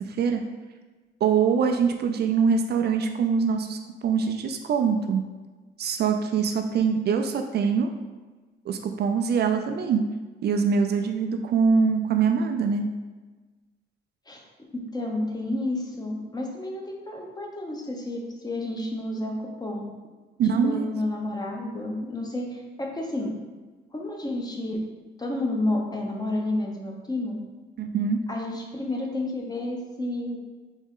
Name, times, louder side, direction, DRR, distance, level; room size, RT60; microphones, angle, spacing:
voice 1, 0.1-0.4 1.2-5.2 5.8-7.9 8.7-10.0 10.4-12.9 20.4-20.9 27.8-28.2, right 6 dB, 55° right, 5 dB, 0.4 m, -23 dB
voice 2, 14.7-19.3 19.6-19.8 20.6-23.3 23.9-24.8 25.2-27.4 28.3-30.4, left 1 dB, 20° left, 0 dB, 0.9 m, -30 dB
4.1 x 3.5 x 3.6 m, 1.3 s
cardioid pair, 90°, 20 cm